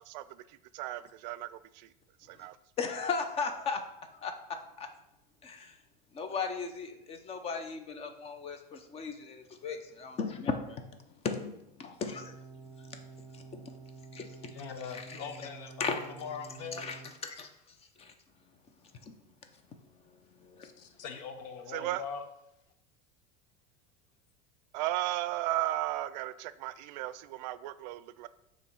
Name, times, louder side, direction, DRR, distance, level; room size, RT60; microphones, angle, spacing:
voice 1, 0.7-1.5 1.8-1.9 2.3-2.6 21.7-22.0 24.7-28.3, right 15 dB, 85° right, 16 dB, 0.4 m, -34 dB
voice 2, 2.8-3.8 4.2-4.3 4.8-4.9 5.4-5.7 6.1-10.9 11.2-12.3 13.3-13.6 14.1-14.5 14.9-15.2 15.8-16.0 16.8-17.5 18.0-18.1 19.1-19.2 20.4-20.7, left 5 dB, 30° left, 7 dB, 0.7 m, -36 dB
sound 1, 12.0-17.1, right 4 dB, 15° right, 0.7 m, -49 dB
voice 3, 14.5-16.9 20.6-22.3, left 6 dB, 70° left, 7 dB, 1.0 m, -42 dB
7.1 x 3.1 x 5.6 m, 0.84 s
supercardioid pair, 140°, 21 cm